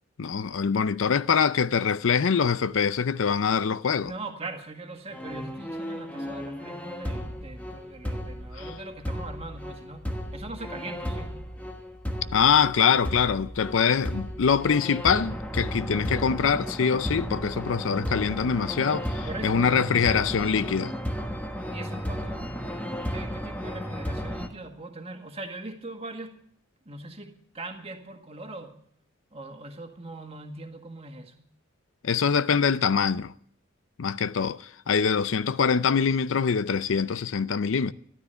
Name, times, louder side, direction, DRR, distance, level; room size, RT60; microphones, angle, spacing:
voice 1, 0.2-4.1 12.3-20.9 32.0-33.3 34.0-37.9, left 6 dB, 75° left, 0.5 m, -24 dB
voice 2, 4.0-11.4 19.2-20.1 21.7-22.5 23.1-26.3 26.9-28.8 29.3-31.5, right 2 dB, 30° right, 1.7 m, -41 dB
sound 1, 5.1-24.5, equal, 5° left, 1.2 m, -34 dB
13.5 x 12.0 x 6.8 m
head